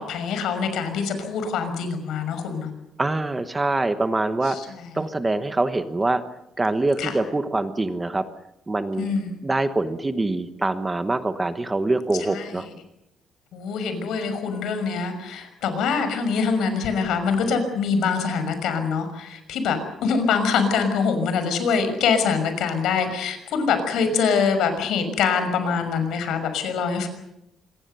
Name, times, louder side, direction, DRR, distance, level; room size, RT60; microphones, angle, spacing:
voice 1, 0.0-2.7 4.5-4.9 7.0-7.1 9.0-9.4 12.3-12.6 13.5-27.1, left 5 dB, 75° left, 9 dB, 6.0 m, -24 dB
voice 2, 3.0-4.6 4.9-6.2 6.6-8.2 8.7-9.1 9.4-12.7, right 2 dB, 15° right, 9 dB, 1.1 m, -24 dB
26.5 x 22.5 x 6.9 m, 0.85 s
cardioid pair, 180°, 0 cm